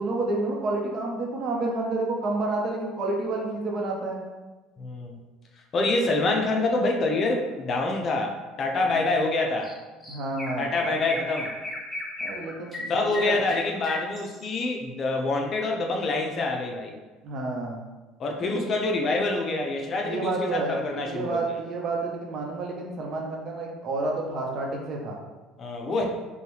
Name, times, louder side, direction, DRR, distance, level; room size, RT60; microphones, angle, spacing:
voice 1, 0.0-4.3 8.9-9.0 10.1-11.0 12.2-13.4 17.2-17.8 18.4-18.7 20.0-25.2, right 2 dB, 45° right, -1 dB, 0.9 m, -30 dB
voice 2, 4.8-5.2 5.7-9.7 10.6-11.5 12.9-16.9 18.2-21.4 25.6-26.1, left 2 dB, 40° left, 1 dB, 0.7 m, -26 dB
Chirp tweet, 9.6-9.8 10.0-14.6, left 1 dB, 15° left, 0.9 m, -35 dB
5.3 x 2.4 x 3.2 m, 1.2 s
supercardioid pair, 105°, 0 cm